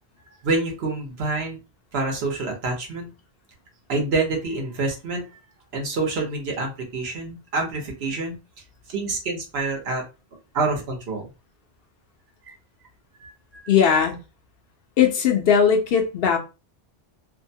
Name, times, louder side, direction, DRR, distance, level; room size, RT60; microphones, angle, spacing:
voice 1, 0.4-1.6 1.9-3.1 3.9-5.3 5.7-8.3 8.9-10.0 10.5-11.3 12.5-12.6 13.2-13.3, right 3 dB, 70° right, 1.1 m, -27 dB
voice 2, 13.7-14.2 15.0-16.4, left 7 dB, 65° left, 0.7 m, -18 dB
2.7 x 2.1 x 2.6 m
omnidirectional pair, 1.1 m